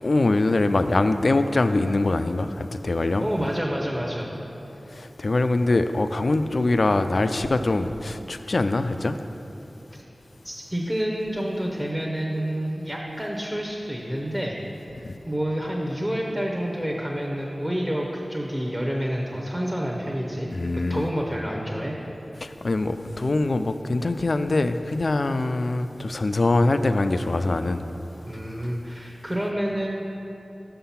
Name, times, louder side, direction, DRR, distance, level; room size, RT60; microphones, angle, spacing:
voice 1, 0.0-3.3 4.9-9.2 15.0-15.2 20.5-21.1 22.4-27.8, left 2 dB, 70° left, 10 dB, 0.3 m, -23 dB
voice 2, 3.2-4.3 10.4-14.6 15.3-20.5 20.9-21.9 28.3-29.9, equal, 15° right, -2 dB, 0.8 m, -28 dB
6.5 x 5.7 x 5.6 m, 3.0 s
wide cardioid pair, 60°, 0 cm